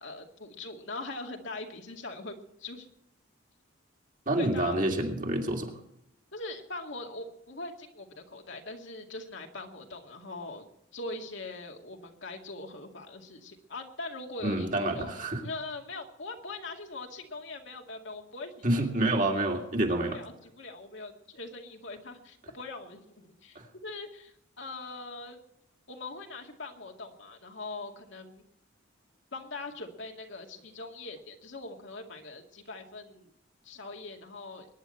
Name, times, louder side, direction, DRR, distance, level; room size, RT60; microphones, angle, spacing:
voice 1, 0.0-2.9 4.4-4.8 6.3-10.6 10.9-18.5 19.4-19.5 20.0-25.4 25.9-28.4 29.3-33.3 33.6-34.7, left 3 dB, 65° left, 3 dB, 2.2 m, -42 dB
voice 2, 4.3-5.8 14.4-15.4 18.6-20.2 23.5-23.6, right 1 dB, 40° right, 2 dB, 2.6 m, -28 dB
23.0 x 10.5 x 4.5 m, 0.76 s
head